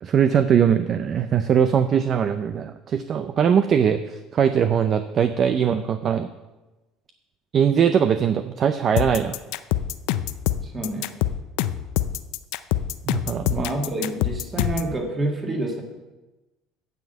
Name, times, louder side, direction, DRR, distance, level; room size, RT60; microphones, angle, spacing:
voice 1, 0.0-6.3 7.5-9.4 13.1-13.7, right 8 dB, 35° right, 10 dB, 0.5 m, -21 dB
sound 1, 9.0-14.9, left 13 dB, 70° left, 0.5 m, -25 dB
voice 2, 10.6-11.1 13.5-15.8, right 1 dB, 15° right, 2 dB, 1.8 m, -28 dB
9.4 x 7.3 x 8.0 m, 1.1 s
cardioid pair, 160°, 0 cm